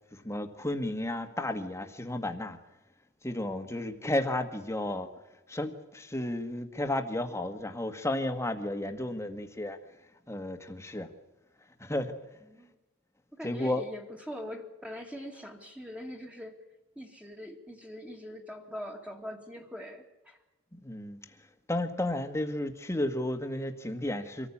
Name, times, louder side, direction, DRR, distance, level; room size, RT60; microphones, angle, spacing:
voice 1, 0.1-2.6 3.2-5.1 5.5-9.8 10.3-11.1 11.8-12.1 13.4-13.8 20.7-21.4 21.7-24.5, left 1 dB, 15° left, 1.6 m, -33 dB
voice 2, 13.3-16.6 17.0-20.4, equal, 5° right, 2.2 m, -42 dB
25.0 x 14.5 x 8.6 m
head